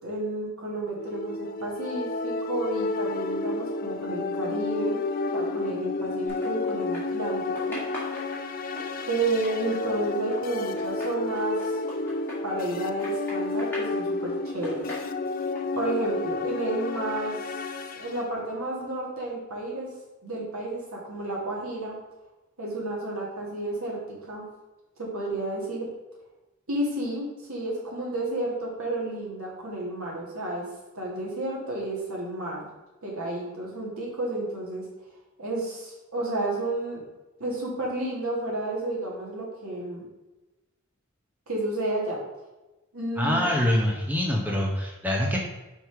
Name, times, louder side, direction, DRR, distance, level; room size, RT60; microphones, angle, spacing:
voice 1, 0.0-5.0 5.3-7.8 9.0-11.8 12.4-14.9 15.7-17.6 17.9-19.9 20.2-21.9 22.6-24.4 25.0-25.9 26.7-30.7 30.9-32.6 33.0-34.8 35.4-37.0 37.4-40.0 41.5-42.2 42.9-43.4, right 2 dB, 70° right, -4 dB, 2.2 m, -31 dB
sound 1, 1.0-18.2, left 3 dB, 40° left, 0.4 m, -31 dB
sound 2, 6.3-7.3 7.5-12.7 13.0-14.0 14.4-15.6, equal, 10° left, 1.9 m, -40 dB
voice 2, 43.2-45.5, left 1 dB, 10° right, -1 dB, 0.7 m, -25 dB
5.3 x 4.6 x 4.6 m, 1.1 s
head